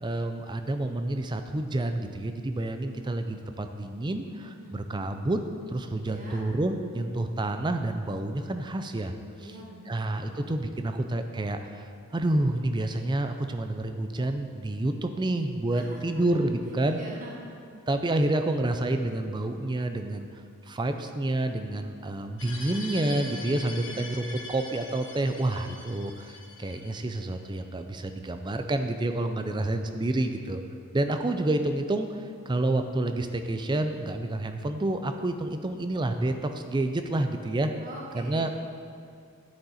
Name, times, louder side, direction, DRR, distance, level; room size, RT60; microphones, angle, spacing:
voice 1, 0.0-5.4 5.7-9.1 9.9-11.8 12.1-17.0 17.9-20.3 20.7-30.6 30.9-37.7 38.1-38.5, right 2 dB, 20° right, 7 dB, 0.4 m, -29 dB
voice 2, 4.6-5.1 5.8-6.5 6.9-7.1 9.3-10.5 15.7-16.4 16.9-17.3 29.4-30.0 37.8-38.5, equal, 35° right, -4 dB, 1.6 m, -46 dB
sound 1, 22.4-27.4, left 3 dB, 55° left, 1.2 m, -42 dB
9.6 x 7.6 x 4.2 m, 2.3 s
head